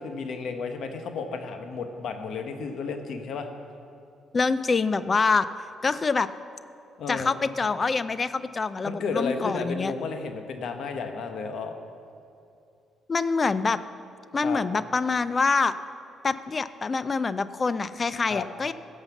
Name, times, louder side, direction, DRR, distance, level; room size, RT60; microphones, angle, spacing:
voice 1, 0.0-3.5 7.0-7.4 8.8-11.7 14.4-14.6 18.3-18.5, left 4 dB, 70° left, 6 dB, 1.1 m, -32 dB
voice 2, 4.3-5.5 5.8-6.3 7.1-9.9 13.1-13.8 14.3-15.7 16.2-18.7, left 4 dB, 35° left, 14 dB, 0.4 m, -25 dB
15.5 x 5.6 x 7.1 m, 2.6 s
cardioid pair, 90°, 0 cm